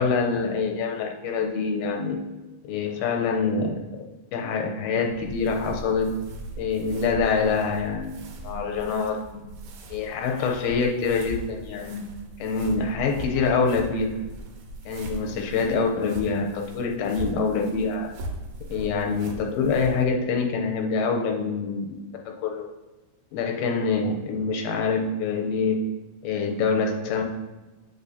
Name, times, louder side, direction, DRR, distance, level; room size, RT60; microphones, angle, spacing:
voice 1, 0.0-2.2 2.6-4.0 4.3-6.2 6.6-8.2 8.4-9.5 9.9-12.0 12.4-14.2 14.9-18.1 18.7-22.0 22.3-22.7 23.3-25.8 26.2-27.2, left 4 dB, 85° left, 2 dB, 2.4 m, -25 dB
sound 1, 5.0-20.0, right 1 dB, 75° right, 2.2 m, -39 dB
8.3 x 7.0 x 2.7 m, 1.1 s
omnidirectional pair, 4.5 m